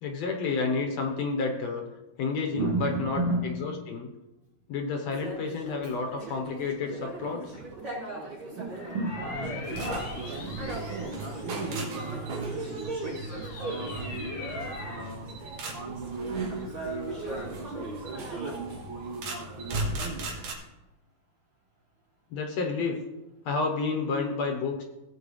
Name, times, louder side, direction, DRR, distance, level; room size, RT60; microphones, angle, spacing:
voice 1, 0.0-1.8 2.2-4.0 4.7-7.6 22.3-23.0 23.5-24.8, left 4 dB, 65° left, 2 dB, 2.0 m, -30 dB
voice 2, 2.5-3.8 5.8-5.9 7.3-7.4 8.5-15.3 15.7-20.3, right 2 dB, 55° right, -2 dB, 1.6 m, -36 dB
sound 1, 5.1-14.2 14.5-18.6, right 2 dB, 35° right, 3.8 m, -40 dB
sound 2, 8.8-11.7 12.3-15.2, left 3 dB, 50° left, 1.5 m, -40 dB
sound 3, 9.7-20.5, right 2 dB, 70° right, 3.0 m, -38 dB
17.0 x 7.9 x 3.2 m, 1.0 s
omnidirectional pair, 3.7 m